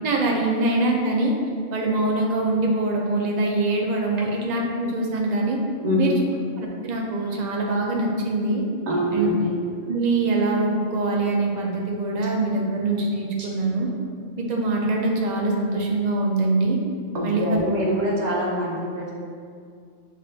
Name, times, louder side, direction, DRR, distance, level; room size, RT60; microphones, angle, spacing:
voice 1, 0.0-1.3 1.7-5.6 6.0-6.1 6.6-8.6 9.1-9.3 9.9-13.9 14.4-16.8 17.2-17.6, right 2 dB, 60° right, -1 dB, 0.4 m, -23 dB
voice 2, 5.8-6.3 8.9-9.5 17.1-19.1, equal, 40° right, -5 dB, 0.8 m, -24 dB
6.3 x 2.6 x 2.6 m, 2.2 s
omnidirectional pair, 1.4 m